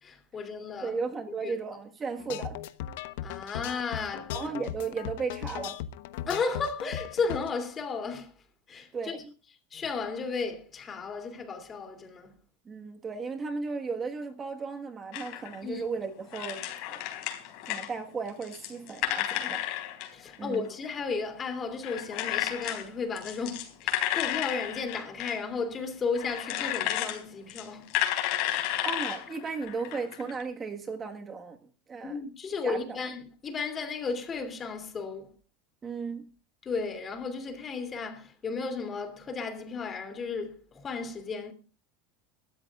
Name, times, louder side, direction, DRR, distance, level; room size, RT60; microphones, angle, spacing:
voice 1, 0.0-1.0 1.4-1.6 3.2-4.4 6.3-8.3 8.7-9.2 9.7-12.3 15.6-15.8 19.4-19.5 20.1-27.9 32.0-35.3 36.6-41.5, left 4 dB, 25° left, 2.9 m, -34 dB
voice 2, 0.8-2.6 4.3-5.8 8.9-9.3 12.6-17.0 17.7-19.6 20.4-20.7 28.5-31.6 31.9-32.2 32.6-33.0 35.8-36.3, right 4 dB, 25° right, 1.5 m, -35 dB
sound 1, 2.2-7.5, left 11 dB, 75° left, 1.0 m, -37 dB
sound 2, 15.1-15.6 16.3-17.9 18.3-21.0 21.8-22.9 23.2-25.4 26.1-27.2 27.5-30.4, left 13 dB, 60° left, 3.9 m, -32 dB
23.0 x 13.5 x 2.4 m
supercardioid pair, 135°, 0 cm